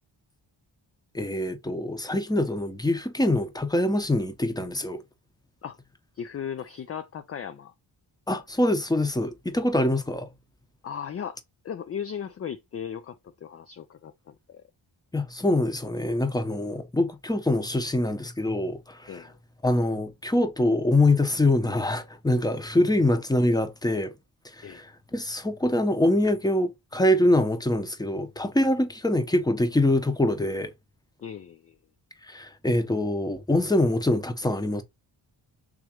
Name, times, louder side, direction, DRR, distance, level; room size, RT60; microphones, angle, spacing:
voice 1, 1.1-5.0 8.3-10.3 15.1-19.3 19.6-24.1 24.4-30.7 32.2-34.8, left 1 dB, 10° left, 0.8 m, -24 dB
voice 2, 6.2-7.7 10.8-11.4 11.6-14.7 19.1-19.3 24.6-24.8 31.2-31.8, left 8 dB, 30° left, 0.4 m, -37 dB
3.7 x 3.1 x 2.9 m
cardioid pair, 45°, 49 cm